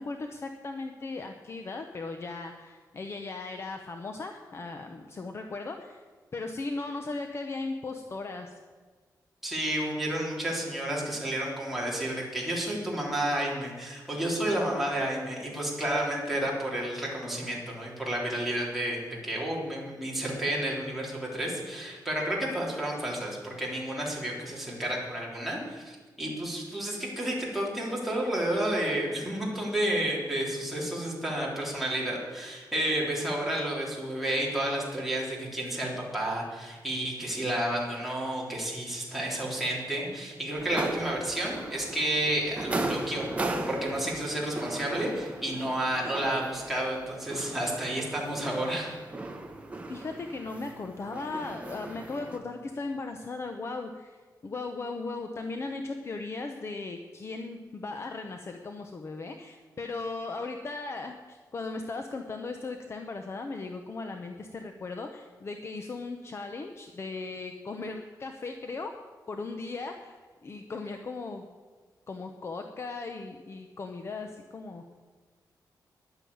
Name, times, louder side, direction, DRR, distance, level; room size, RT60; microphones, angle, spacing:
voice 1, 0.0-6.0 6.3-8.6 49.9-54.2 54.4-68.9 69.3-70.2 70.4-71.5 72.1-74.9, left 3 dB, 35° left, 5 dB, 0.8 m, -37 dB
voice 2, 9.4-43.3 43.7-49.0, right 1 dB, ahead, -5 dB, 3.6 m, -31 dB
sound 1, 40.6-52.4, right 2 dB, 20° right, 1.2 m, -37 dB
11.0 x 9.4 x 8.6 m, 1.5 s
wide cardioid pair, 160°, 7 cm